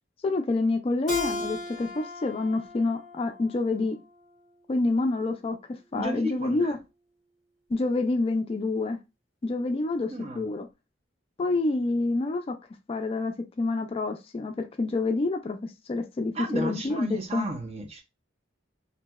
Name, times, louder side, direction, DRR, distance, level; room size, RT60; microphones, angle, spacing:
voice 1, 0.2-4.0 4.7-5.6 5.9-6.8 7.7-9.0 9.4-10.7 11.4-12.5 12.9-17.5, left 3 dB, 30° left, 0.3 m, -27 dB
Keyboard (musical), 1.1-4.3, left 2 dB, ahead, 1.7 m, -37 dB
voice 2, 5.9-6.7 10.1-10.5 16.3-18.0, right 1 dB, 35° right, 0.6 m, -34 dB
3.0 x 2.6 x 2.2 m
head